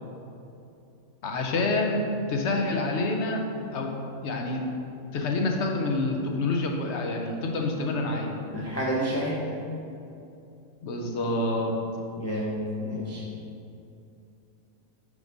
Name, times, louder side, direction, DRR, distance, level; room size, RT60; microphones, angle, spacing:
voice 1, 1.2-3.4 3.7-4.0 4.2-4.6 5.1-8.3 10.8-11.8, left 2 dB, 60° left, 2 dB, 0.9 m, -27 dB
voice 2, 8.5-9.4 12.2-13.2, equal, 20° left, -6 dB, 0.5 m, -29 dB
5.0 x 4.8 x 5.2 m, 2.7 s
omnidirectional pair, 1.5 m